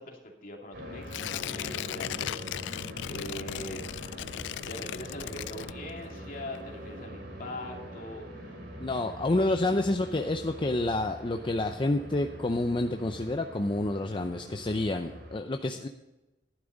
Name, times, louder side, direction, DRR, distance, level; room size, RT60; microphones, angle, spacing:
voice 1, 0.0-3.9 4.6-8.6 8.9-9.1, left 1 dB, 50° left, 1 dB, 2.6 m, -42 dB
sound 1, 0.7-15.4, equal, 65° right, 3.2 m, -43 dB
Tearing, 1.1-6.2 6.5-6.6, left 11 dB, 75° left, 0.3 m, -37 dB
voice 2, 8.8-15.9, left 2 dB, 30° left, 5 dB, 0.6 m, -29 dB
12.0 x 11.0 x 4.0 m, 1.0 s
head